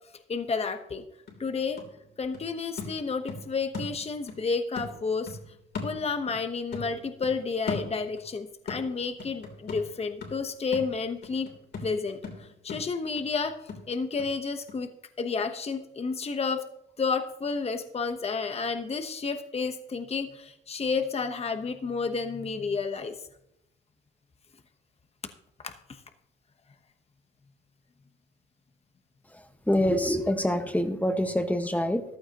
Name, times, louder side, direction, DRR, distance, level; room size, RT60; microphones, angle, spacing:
voice 1, 0.3-1.0 1.4-1.8 2.2-5.4 5.8-11.5 11.8-13.6 13.9-14.9 15.2-16.7 17.0-23.1 25.6-25.7, left 4 dB, 30° left, 7 dB, 1.0 m, -31 dB
sound 1, 0.8-0.9 1.3-4.4 4.8-6.5 6.7-8.3 8.7-14.3 14.7-14.8, left 4 dB, 60° left, 3.2 m, -39 dB
voice 2, 29.3-32.0, left 1 dB, 5° left, 7 dB, 1.3 m, -26 dB
14.5 x 12.0 x 2.9 m, 0.80 s
cardioid pair, 90°, 20 cm